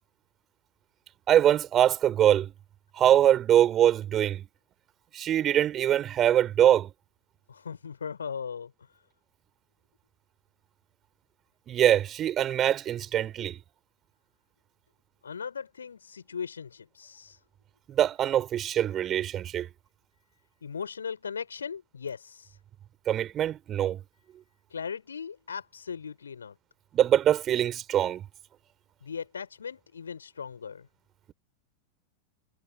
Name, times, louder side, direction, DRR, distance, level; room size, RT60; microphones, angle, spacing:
voice 1, 1.3-2.5 3.0-4.4 5.1-6.9 11.7-13.6 17.9-19.7 23.1-24.0 26.9-28.2, right 11 dB, 30° right, 3.2 m, -23 dB
voice 2, 7.5-8.7 15.2-17.4 20.6-22.6 24.7-26.5 29.0-30.8, left 6 dB, 70° left, 4.8 m, -38 dB
figure-of-eight pair, 90°, 0 cm